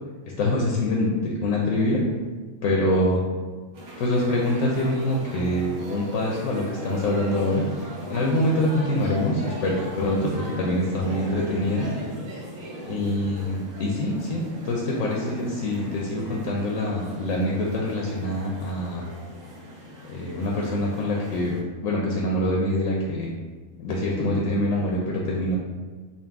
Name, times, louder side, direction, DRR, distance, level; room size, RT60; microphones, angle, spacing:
voice 1, 0.4-2.0 2.6-3.2 4.0-11.9 12.8-19.0 20.1-21.5 21.8-23.4 23.8-25.6, left 1 dB, 80° left, -2 dB, 1.0 m, -25 dB
sound 1, 3.7-21.6, equal, 85° right, 1.3 m, -39 dB
3.9 x 2.3 x 3.4 m, 1.4 s
omnidirectional pair, 1.4 m